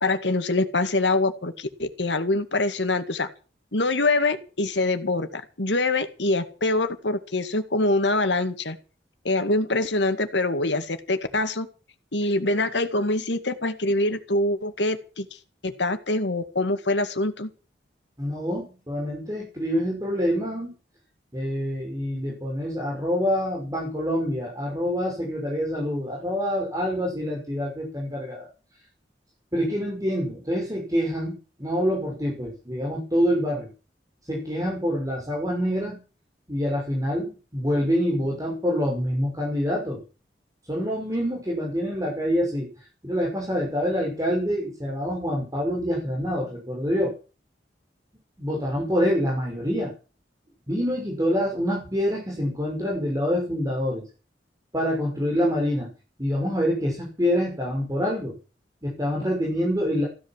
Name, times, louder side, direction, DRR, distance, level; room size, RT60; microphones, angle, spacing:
voice 1, 0.0-3.3 3.7-8.8 9.2-11.7 12.1-15.3 15.6-17.5, left 2 dB, 80° left, 9 dB, 2.1 m, -24 dB
voice 2, 18.2-20.7 21.3-28.5 29.5-33.7 34.3-36.0 36.5-40.0 40.7-42.7 43.0-47.1 48.4-49.9 50.7-54.0 54.7-55.9 56.2-58.3 58.8-60.1, equal, 20° right, -1 dB, 5.8 m, -26 dB
16.0 x 11.5 x 7.4 m, 0.35 s
head